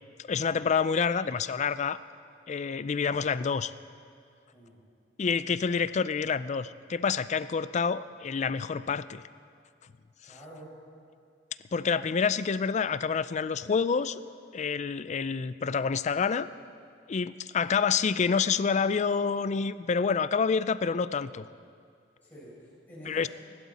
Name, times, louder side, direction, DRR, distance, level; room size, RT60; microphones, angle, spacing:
voice 1, 0.2-2.0 2.5-3.7 5.2-9.2 11.7-14.2 14.5-16.5 17.1-21.5 23.1-23.3, left 5 dB, 40° left, 15 dB, 0.4 m, -28 dB
voice 2, 10.2-10.8 17.7-17.9 22.2-23.3, equal, 10° left, -9 dB, 5.0 m, -48 dB
25.0 x 12.0 x 4.2 m, 2.3 s
head